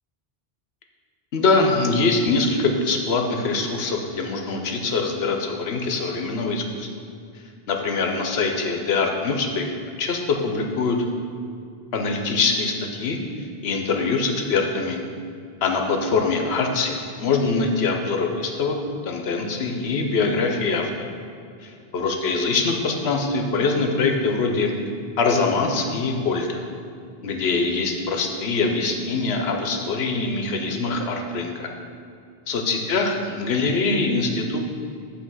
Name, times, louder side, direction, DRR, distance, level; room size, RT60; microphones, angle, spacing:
voice 1, 1.3-6.9 7.7-9.7 10.0-11.1 11.9-15.0 15.6-18.8 19.0-20.9 21.9-24.7 25.2-26.7 27.2-31.7 32.5-34.6, left 3 dB, 80° left, 3 dB, 1.0 m, -23 dB
7.8 x 3.3 x 6.2 m, 2.4 s
omnidirectional pair, 1.1 m